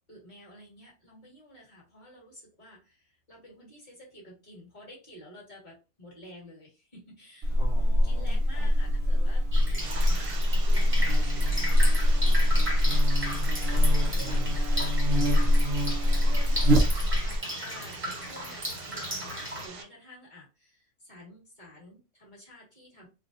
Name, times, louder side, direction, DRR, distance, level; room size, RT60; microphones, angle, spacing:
voice 1, 0.1-7.6 8.0-14.8 16.0-16.7 17.2-19.3 19.6-23.1, left 1 dB, 30° left, -5 dB, 1.8 m, -51 dB
Buzz, 7.4-17.4, equal, 65° right, 0.6 m, -23 dB
voice 2, 7.6-8.7 13.7-15.7, left 2 dB, 50° left, -2 dB, 0.6 m, -45 dB
Drip, 9.5-19.7, equal, 10° right, 0.8 m, -36 dB
No Signal, 9.8-19.8, right 5 dB, 80° right, 1.3 m, -44 dB
3.2 x 2.5 x 2.6 m, 0.30 s
omnidirectional pair, 1.7 m